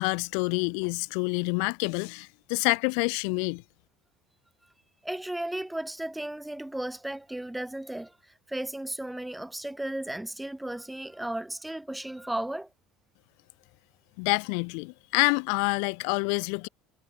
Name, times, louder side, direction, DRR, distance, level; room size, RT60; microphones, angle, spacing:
voice 1, 0.0-3.6 14.2-16.7, left 40 dB or more, 70° left, 3.9 m, -27 dB
voice 2, 5.0-8.1 8.5-12.7, right 1 dB, 5° right, 6.8 m, -35 dB
cardioid pair, 165°, 0 cm